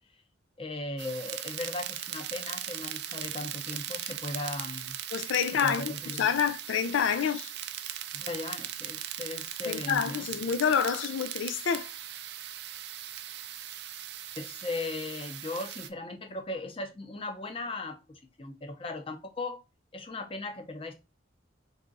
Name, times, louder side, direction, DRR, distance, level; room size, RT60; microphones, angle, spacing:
voice 1, 0.6-5.0 5.6-6.3 8.1-10.2 14.4-19.6 19.9-20.9, left 2 dB, 30° left, 0.6 m, -37 dB
sound 1, 1.0-15.9, right 11 dB, 55° right, 0.4 m, -39 dB
voice 2, 5.1-7.5 9.7-11.9, left 7 dB, 80° left, 0.4 m, -28 dB
3.6 x 2.7 x 3.8 m
head